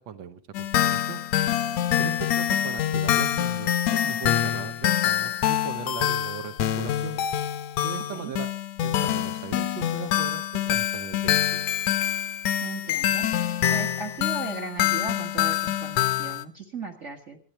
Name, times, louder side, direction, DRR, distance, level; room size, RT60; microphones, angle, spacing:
voice 1, 0.1-1.2 2.0-7.2 7.8-8.5 8.8-11.6, right 8 dB, 75° right, 7 dB, 1.1 m, -38 dB
sound 1, 0.5-16.4, left 11 dB, 75° left, 2.0 m, -25 dB
voice 2, 2.0-2.3 8.1-8.3 12.6-13.3 13.7-17.4, right 3 dB, 35° right, 6 dB, 1.2 m, -37 dB
25.0 x 10.0 x 4.3 m, 0.37 s
omnidirectional pair, 3.4 m